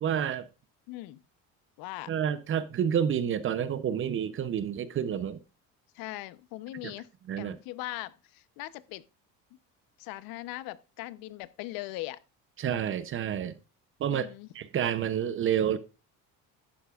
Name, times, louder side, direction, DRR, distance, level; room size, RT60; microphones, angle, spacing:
voice 1, 0.0-0.4 2.1-5.4 7.3-7.6 12.6-13.5 14.0-14.3 14.5-15.8, right 9 dB, 35° right, 0.6 m, -29 dB
voice 2, 0.9-1.2 1.8-2.1 5.9-7.1 7.4-9.0 10.0-12.2 14.0-14.5, left 17 dB, 80° left, 0.8 m, -40 dB
11.5 x 9.3 x 2.4 m
cardioid pair, 150°, 35 cm